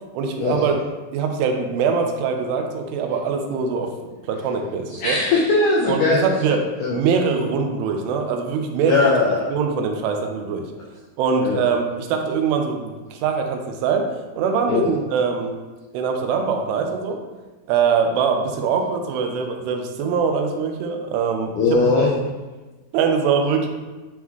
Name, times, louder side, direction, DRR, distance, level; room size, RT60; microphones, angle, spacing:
voice 1, 0.1-0.7 1.1-3.9 4.3-5.2 5.9-6.6 6.9-9.1 9.5-10.7 11.2-14.1 14.4-15.5 15.9-17.2 17.7-21.8 22.9-23.7, right 5 dB, 85° right, 3 dB, 2.9 m, -22 dB
voice 2, 5.0-6.2 6.8-7.0 8.9-9.5 11.4-11.6 14.7-14.9 21.6-22.2, left 3 dB, 85° left, -4 dB, 1.7 m, -19 dB
9.8 x 3.7 x 3.1 m, 1.2 s
omnidirectional pair, 4.7 m